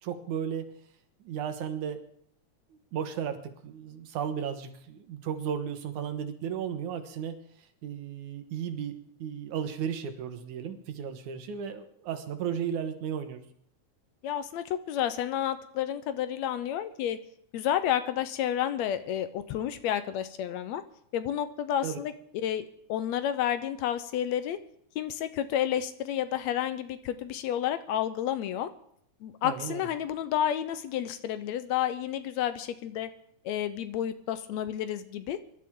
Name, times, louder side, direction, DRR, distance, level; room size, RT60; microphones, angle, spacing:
voice 1, 0.0-0.7 1.2-2.0 2.7-7.4 7.8-13.4 21.8-22.0 29.4-29.9, right 8 dB, 90° right, 7 dB, 2.7 m, -34 dB
voice 2, 14.2-17.2 17.5-20.8 21.1-22.1 22.4-24.6 25.0-28.7 29.2-33.1 33.5-35.4, left 10 dB, 75° left, 12 dB, 2.0 m, -30 dB
23.0 x 12.0 x 3.7 m, 0.66 s
omnidirectional pair, 3.3 m